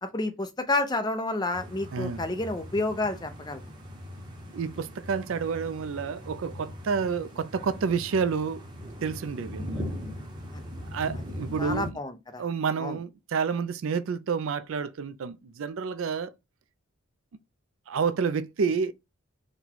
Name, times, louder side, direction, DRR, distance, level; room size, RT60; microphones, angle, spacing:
voice 1, 0.0-3.6 10.5-10.6 11.6-12.4 12.8-13.0, left 2 dB, 20° left, 0.5 m, -30 dB
sound 1, 1.5-11.9, equal, 20° right, 0.8 m, -40 dB
voice 2, 1.9-2.2 4.5-8.6 9.0-9.8 10.9-12.0 12.4-16.3 17.9-18.9, right 5 dB, 70° right, 0.4 m, -29 dB
4.0 x 2.2 x 4.4 m
head